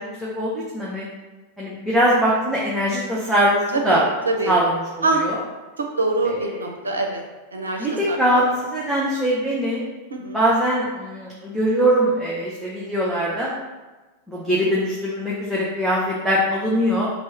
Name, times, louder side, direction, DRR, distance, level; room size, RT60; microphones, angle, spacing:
voice 1, 0.2-1.1 1.6-4.0 4.5-4.7 5.1-5.4 6.2-6.3 7.8-9.8 10.3-13.5 14.3-17.1, equal, 5° right, -7 dB, 0.7 m, -21 dB
voice 2, 3.7-4.6 5.0-5.2 5.8-7.2 7.5-8.5 10.1-10.4, right 2 dB, 75° right, 2 dB, 0.5 m, -24 dB
3.0 x 2.7 x 4.4 m, 1.2 s
figure-of-eight pair, 90°, 0 cm